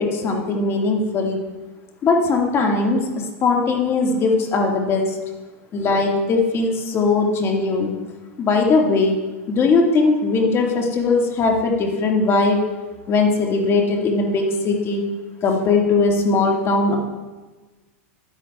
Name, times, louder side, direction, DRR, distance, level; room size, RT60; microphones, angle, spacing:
voice 1, 0.0-1.4 2.0-5.2 5.7-7.9 8.4-9.2 9.5-12.6 13.1-15.0 15.4-17.0, left 3 dB, 30° left, 1 dB, 1.8 m, -19 dB
11.5 x 10.0 x 2.3 m, 1.2 s
hypercardioid pair, 115°, 8 cm